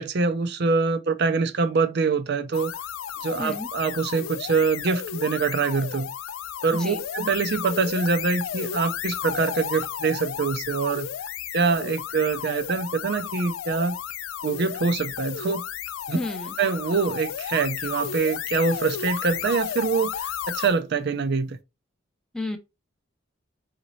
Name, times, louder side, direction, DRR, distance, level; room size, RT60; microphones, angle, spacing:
voice 1, 0.0-2.7 3.2-6.1 6.6-11.1 11.5-14.0 14.4-15.6 16.1-16.2 16.6-21.6, right 4 dB, 55° right, 0.5 m, -24 dB
sound 1, 2.5-20.8, left 9 dB, 85° left, 0.3 m, -33 dB
voice 2, 16.1-16.5 22.3-22.6, left 2 dB, 5° left, 0.5 m, -32 dB
4.9 x 2.7 x 3.0 m
head